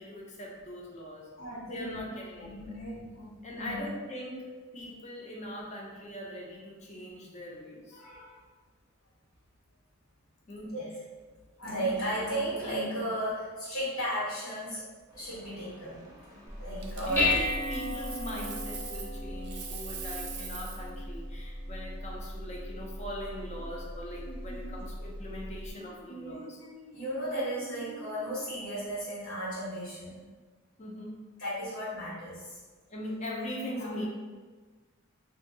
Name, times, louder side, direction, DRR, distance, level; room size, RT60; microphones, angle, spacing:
voice 1, 0.0-1.3 1.7-2.8 3.4-8.0 10.5-10.7 16.4-16.6 16.9-26.6 30.8-31.1 32.9-34.1, left 1 dB, 30° left, -3 dB, 0.6 m, -41 dB
voice 2, 1.4-2.0 2.4-3.9 7.9-8.4 10.7-10.8 11.6-14.8 15.1-16.0 16.6-17.3 24.2-24.8 25.8-30.2 31.4-32.6 33.8-33.9, right 1 dB, 85° left, -11 dB, 1.5 m, -35 dB
sound 1, 15.0-20.3, equal, 15° right, 0.7 m, -50 dB
Dishes pots and pans, 16.5-25.7, left 2 dB, 10° left, 0.9 m, -35 dB
Coin (dropping), 16.8-19.2 19.4-20.9 23.7-23.9, right 6 dB, 50° right, 0.4 m, -43 dB
2.8 x 2.7 x 3.9 m, 1.4 s
head